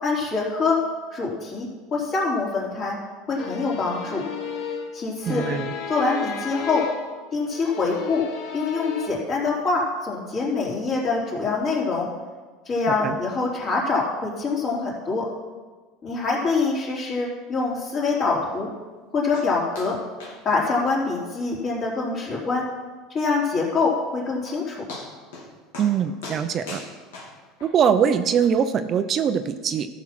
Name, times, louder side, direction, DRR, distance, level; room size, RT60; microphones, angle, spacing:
voice 1, 0.0-0.8 1.1-3.0 3.3-4.2 4.9-5.5 5.9-6.9 7.3-8.2 8.5-12.1 12.7-15.3 16.0-18.7 19.1-20.0 20.4-22.6 23.1-24.8, left 4 dB, 40° left, -4 dB, 3.6 m, -25 dB
sound 1, 3.4-7.2 7.5-9.1, left 7 dB, 60° left, 1.4 m, -33 dB
voice 2, 5.3-5.7 13.0-13.2 25.8-26.8 27.6-29.9, right 7 dB, 40° right, 9 dB, 0.6 m, -22 dB
sound 2, 19.3-19.5 19.7-19.9 20.2-20.4 20.6-20.7 21.2-21.3 21.7-21.8 22.2-22.3 24.0-24.1 24.5-24.6 24.9-25.5 25.7-25.9 26.2-27.7 28.4-28.5, left 3 dB, 90° left, 2.7 m, -38 dB
13.0 x 6.1 x 5.9 m, 1.4 s
supercardioid pair, 115°, 0 cm